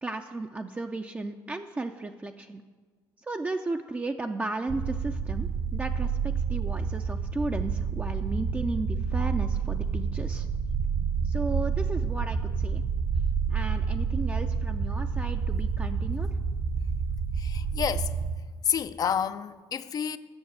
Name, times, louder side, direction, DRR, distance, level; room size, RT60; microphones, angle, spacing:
voice 1, 0.0-2.6 3.2-10.5 11.2-12.8 13.5-16.3, right 3 dB, 15° right, 0.4 m, -34 dB
sound 1, 4.7-18.4, right 5 dB, 60° right, 1.0 m, -29 dB
voice 2, 17.4-18.1 18.6-20.2, left 8 dB, 45° left, 0.4 m, -29 dB
8.0 x 6.5 x 7.9 m
supercardioid pair, 85°, 9 cm